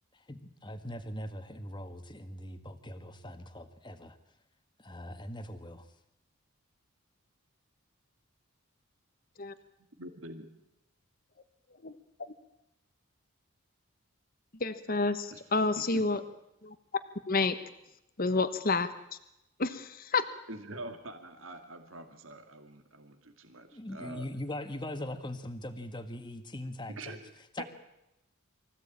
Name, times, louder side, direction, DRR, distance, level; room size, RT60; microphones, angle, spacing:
voice 1, 0.1-4.2 4.8-5.9 23.7-27.2 27.5-27.6, left 1 dB, 20° left, 8 dB, 1.7 m, -41 dB
voice 2, 10.0-10.5 15.3-15.4 15.8-16.2 20.5-24.3 27.0-27.3 27.6-27.7, right 2 dB, 65° right, 5 dB, 2.4 m, -45 dB
voice 3, 14.6-16.2 16.6-16.7 17.3-17.6 18.2-19.2 19.6-20.3, left 3 dB, 40° left, 10 dB, 1.1 m, -29 dB
24.5 x 16.0 x 8.9 m, 0.87 s
head